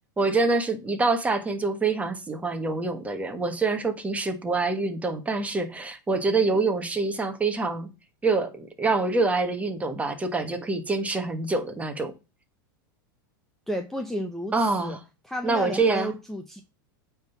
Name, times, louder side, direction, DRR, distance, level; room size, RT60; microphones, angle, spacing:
voice 1, 0.2-7.9 8.2-12.1 14.5-15.0 15.4-16.1, right 3 dB, 10° right, 1.3 m, -26 dB
voice 2, 13.7-14.5 14.8-15.0 15.2-16.6, equal, 5° left, 0.8 m, -32 dB
8.8 x 3.7 x 5.7 m
supercardioid pair, 130°, 11 cm